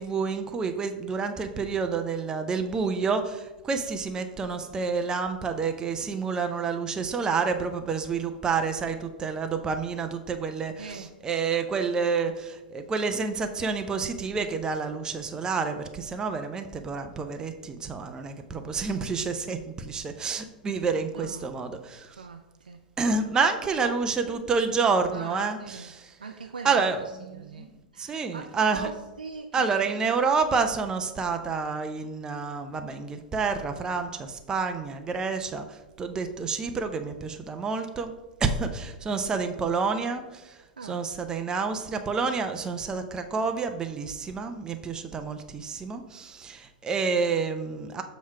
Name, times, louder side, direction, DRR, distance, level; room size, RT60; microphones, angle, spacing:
voice 1, 0.0-22.2 23.0-26.1 26.6-27.0 27.3-28.9 29.5-38.1 38.4-48.0, right 5 dB, 15° right, 6 dB, 0.5 m, -29 dB
voice 2, 10.8-11.1 21.1-21.5 22.2-22.8 23.3-23.5 23.8-24.0 24.3-24.4 25.1-25.9 26.2-27.7 27.9-30.3 40.8-40.9, right 4 dB, 75° right, 4 dB, 0.5 m, -41 dB
7.2 x 3.1 x 5.7 m, 1.1 s
figure-of-eight pair, 100°, 5 cm